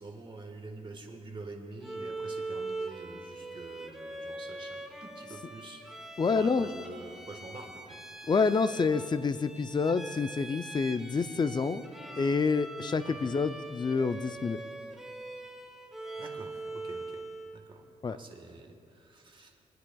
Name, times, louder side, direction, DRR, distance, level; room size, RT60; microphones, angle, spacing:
voice 1, 0.0-8.3 13.0-13.3 16.2-17.2 17.5-19.6, right 3 dB, 35° right, 4 dB, 1.4 m, -47 dB
Bowed string instrument, 1.8-17.6, right 2 dB, ahead, 0.9 m, -42 dB
voice 2, 6.2-6.7 8.3-11.9 12.2-14.6 18.0-18.2, left 4 dB, 30° left, 12 dB, 0.4 m, -28 dB
23.5 x 9.6 x 2.3 m, 2.5 s
cardioid pair, 90°, 15 cm